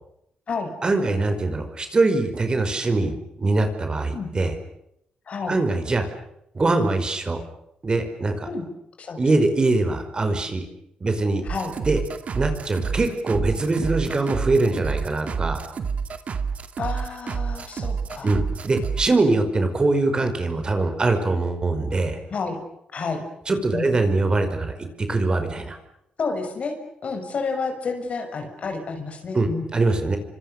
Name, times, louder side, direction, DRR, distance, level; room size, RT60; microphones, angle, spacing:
voice 1, 0.8-3.1 3.4-4.5 5.5-6.0 6.5-7.4 7.8-8.5 9.2-10.7 11.0-11.5 11.8-12.0 12.3-15.6 18.2-22.2 23.5-25.8 29.3-30.2, right 2 dB, 35° right, 7 dB, 5.1 m, -22 dB
voice 2, 5.3-5.6 8.4-8.6 9.0-9.2 11.4-11.7 16.8-18.4 22.3-22.6 22.9-23.2 23.7-23.9 26.2-26.8 27.0-29.7, left 4 dB, 55° left, 6 dB, 6.4 m, -30 dB
sound 1, 11.5-19.2, right 5 dB, 55° right, 2.3 m, -29 dB
29.5 x 26.0 x 6.7 m, 0.78 s
cardioid pair, 90°, 3 cm